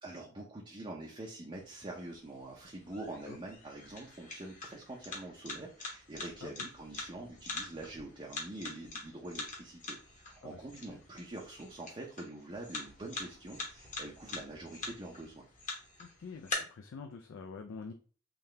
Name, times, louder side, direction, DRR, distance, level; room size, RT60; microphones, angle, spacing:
voice 1, 0.0-15.4, right 2 dB, 25° right, -2 dB, 0.5 m, -45 dB
sound 1, 1.5-16.5, left 3 dB, 35° left, 1.0 m, -45 dB
voice 2, 16.0-17.9, left 5 dB, 60° left, 6 dB, 0.4 m, -46 dB
3.8 x 2.7 x 3.2 m, 0.40 s
head